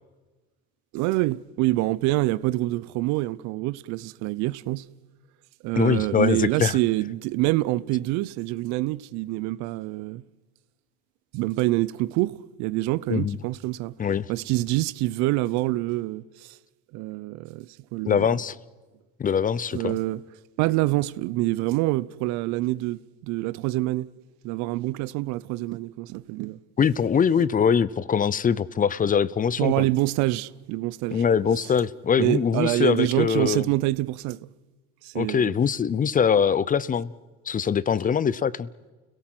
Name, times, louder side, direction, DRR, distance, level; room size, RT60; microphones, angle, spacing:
voice 1, 0.9-4.9 5.6-10.2 11.3-14.0 14.3-16.6 16.9-18.2 19.7-20.2 20.6-24.1 24.4-26.6 29.6-31.2 32.2-34.5 35.0-35.6, right 18 dB, 70° right, 0.8 m, -26 dB
voice 2, 5.8-6.8 13.1-13.4 14.0-14.3 18.1-18.6 19.2-20.0 26.8-29.9 31.1-33.7 35.1-37.1 37.5-38.7, left 7 dB, 30° left, 0.7 m, -23 dB
29.5 x 17.5 x 7.8 m
supercardioid pair, 95°, 29 cm